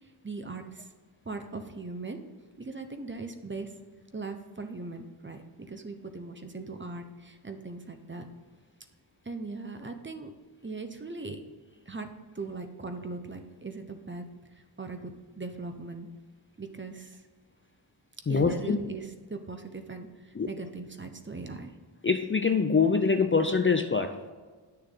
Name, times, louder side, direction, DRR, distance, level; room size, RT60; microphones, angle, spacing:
voice 1, 0.2-0.9 1.2-2.2 2.6-3.7 4.1-8.3 9.2-10.3 10.6-11.4 11.9-12.1 12.3-14.3 14.5-16.1 16.6-17.2 18.3-21.7, right 3 dB, 25° right, 6 dB, 0.9 m, -39 dB
voice 2, 18.3-18.8 20.4-20.5 22.0-24.3, left 5 dB, 30° left, 7 dB, 0.5 m, -24 dB
10.5 x 6.6 x 3.9 m, 1.4 s
wide cardioid pair, 125°, 44 cm